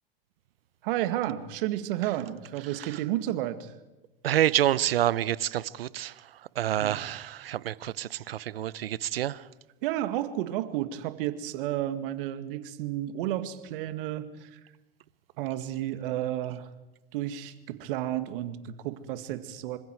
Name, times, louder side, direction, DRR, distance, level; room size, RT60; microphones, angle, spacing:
voice 1, 0.8-3.7 6.8-7.0 9.8-14.6 15.4-16.7 17.1-19.8, right 13 dB, 65° right, 2.1 m, -32 dB
voice 2, 4.2-9.5, right 12 dB, 85° right, 0.8 m, -28 dB
26.5 x 25.5 x 4.7 m
hypercardioid pair, 95°, 29 cm